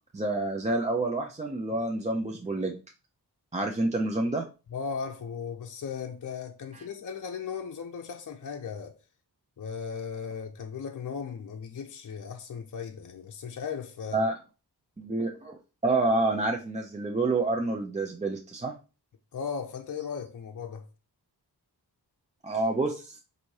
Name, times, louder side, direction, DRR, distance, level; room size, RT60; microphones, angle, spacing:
voice 1, 0.1-2.7 3.5-4.4 14.1-14.4 15.0-15.6 15.8-18.7 22.4-23.2, right 2 dB, 15° right, 0.5 m, -28 dB
voice 2, 4.7-9.0 9.6-14.2 19.3-20.9, left 6 dB, 50° left, 0.5 m, -37 dB
4.2 x 2.7 x 4.6 m
wide cardioid pair, 120°, 41 cm